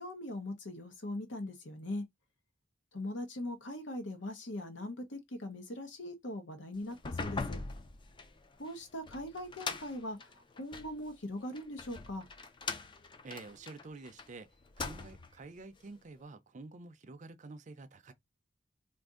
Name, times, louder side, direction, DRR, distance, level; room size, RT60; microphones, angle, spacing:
voice 1, 0.0-2.0 2.9-7.6 8.6-12.3, left 1 dB, 75° left, 0.9 m, -41 dB
sound 1, 6.9-11.0 11.6-14.3 14.6-15.4, left 4 dB, 25° left, 0.4 m, -41 dB
voice 2, 13.2-14.5 14.8-18.1, right 3 dB, 40° right, 0.5 m, -49 dB
2.6 x 2.6 x 3.6 m
head